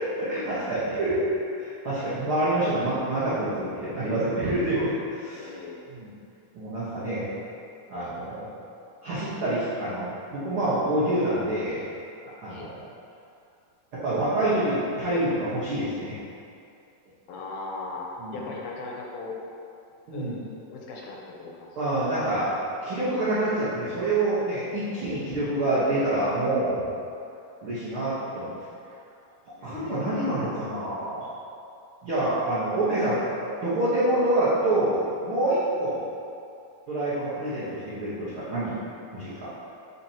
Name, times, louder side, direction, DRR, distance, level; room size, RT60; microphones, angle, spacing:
voice 1, 0.2-1.2 1.5-5.5 5.9-6.1 6.5-7.3 7.9-8.5 9.0-11.8 12.4-12.8 13.9-16.2 18.2-18.4 20.1-20.4 21.7-22.5 22.8-26.9 27.6-28.5 29.6-31.2 32.0-36.0 36.9-38.8 39.1-39.5, right 1 dB, 85° right, -11 dB, 1.1 m, -27 dB
voice 2, 5.3-5.9 12.5-12.7 17.3-19.4 20.1-21.8 29.6-30.2, left 3 dB, 80° left, -2 dB, 2.5 m, -38 dB
10.5 x 4.3 x 2.9 m, 2.6 s
omnidirectional pair, 4.4 m